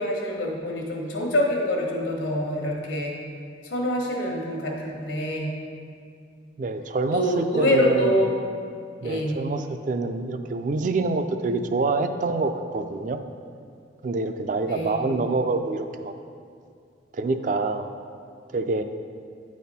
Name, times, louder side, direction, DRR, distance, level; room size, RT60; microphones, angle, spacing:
voice 1, 0.0-3.1 3.6-5.5 7.1-8.4 9.0-9.5 14.7-15.2, equal, 85° left, -1 dB, 1.2 m, -25 dB
voice 2, 6.6-8.1 9.0-13.2 14.0-16.1 17.1-17.9 18.5-18.8, right 3 dB, 45° right, 8 dB, 0.3 m, -26 dB
9.1 x 4.2 x 4.1 m, 2.3 s
head